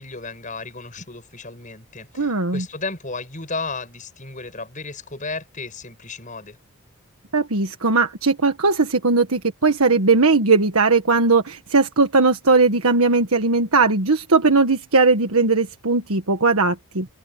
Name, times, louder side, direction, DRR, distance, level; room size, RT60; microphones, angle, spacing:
voice 1, 0.0-6.6, left 3 dB, 35° left, 7.2 m, -34 dB
voice 2, 2.2-2.6 7.3-17.1, right 3 dB, 80° right, 1.5 m, -18 dB
head